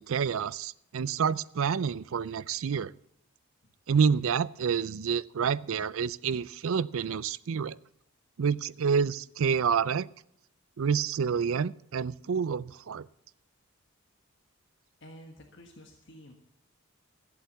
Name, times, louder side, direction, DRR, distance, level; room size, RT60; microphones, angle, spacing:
voice 1, 0.0-2.9 3.9-7.8 8.4-10.1 10.8-13.1, right 6 dB, 65° right, 19 dB, 0.4 m, -28 dB
voice 2, 15.0-16.3, equal, 50° left, 2 dB, 1.5 m, -50 dB
14.5 x 8.1 x 7.2 m, 0.73 s
head